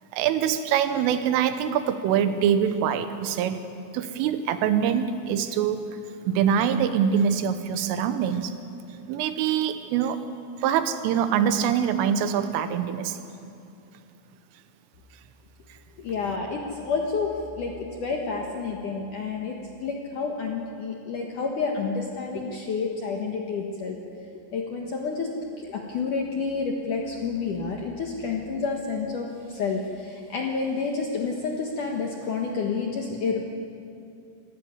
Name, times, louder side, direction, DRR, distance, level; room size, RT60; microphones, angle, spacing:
voice 1, 0.1-3.6 3.9-5.9 6.3-8.5 9.1-10.2 10.6-13.2, right 8 dB, 85° right, 10 dB, 3.6 m, -24 dB
voice 2, 16.0-19.5 19.8-24.0 24.5-25.3 25.6-33.4, left 4 dB, 65° left, 0 dB, 2.0 m, -29 dB
26.5 x 13.5 x 9.6 m, 2.6 s
omnidirectional pair, 5.7 m